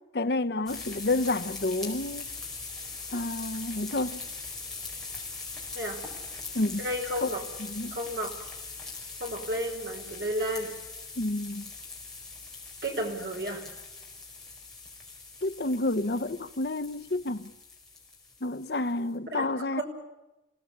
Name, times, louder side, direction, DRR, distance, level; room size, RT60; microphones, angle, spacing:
voice 1, 0.1-2.3 3.1-4.2 6.5-6.8 7.2-7.3 7.6-8.0 11.2-11.7 15.4-17.5 18.4-19.8, left 2 dB, 60° left, 0.9 m, -29 dB
sound 1, 0.7-19.1, left 3 dB, 5° left, 4.9 m, -41 dB
voice 2, 6.8-7.4 7.9-8.3 9.2-10.7 12.8-13.6 19.3-19.8, equal, 60° right, 5.2 m, -32 dB
28.0 x 17.5 x 8.7 m
head